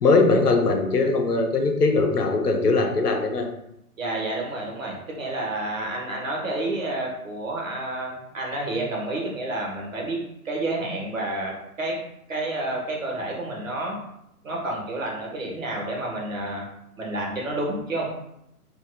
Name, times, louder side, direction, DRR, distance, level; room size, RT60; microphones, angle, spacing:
voice 1, 0.0-3.5, left 3 dB, 85° left, 3 dB, 0.7 m, -20 dB
voice 2, 4.0-12.0 12.3-14.0 14.4-16.7 17.0-18.1, right 2 dB, 60° right, -1 dB, 1.0 m, -29 dB
2.9 x 2.7 x 2.2 m, 0.78 s
figure-of-eight pair, 135°, 46 cm